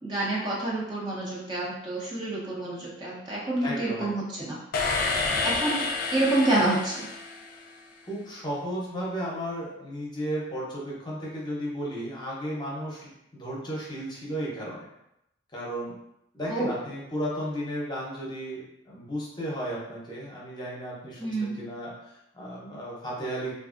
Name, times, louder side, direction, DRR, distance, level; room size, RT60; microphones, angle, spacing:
voice 1, 0.0-4.6 5.4-5.9 6.1-7.1 16.5-16.7 21.2-21.5, right 2 dB, 25° right, -6 dB, 0.5 m, -28 dB
voice 2, 3.6-4.1 8.0-14.9 15.5-16.0 16.3-23.5, equal, 20° left, -5 dB, 0.7 m, -34 dB
sound 1, 4.7-7.9, left 3 dB, 45° left, 0.3 m, -29 dB
3.4 x 2.4 x 2.4 m, 0.84 s
head